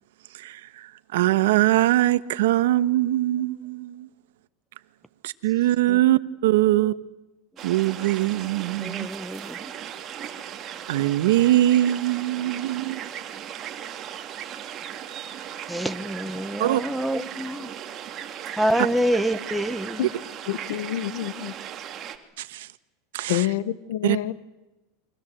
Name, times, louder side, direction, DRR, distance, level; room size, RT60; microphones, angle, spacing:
voice 1, 0.3-4.1 5.2-6.9 7.6-9.1 10.9-13.0 16.6-16.8 22.4-22.7 23.1-23.5 24.0-24.2, right 15 dB, 80° right, 1.3 m, -22 dB
sound 1, 7.6-22.2, right 9 dB, 30° right, 2.5 m, -37 dB
voice 2, 8.8-9.7 15.7-17.7 18.6-20.1, equal, ahead, 1.2 m, -27 dB
voice 3, 20.5-21.5 23.3-24.3, left 13 dB, 75° left, 1.2 m, -27 dB
29.5 x 23.5 x 7.8 m
supercardioid pair, 140°, 0 cm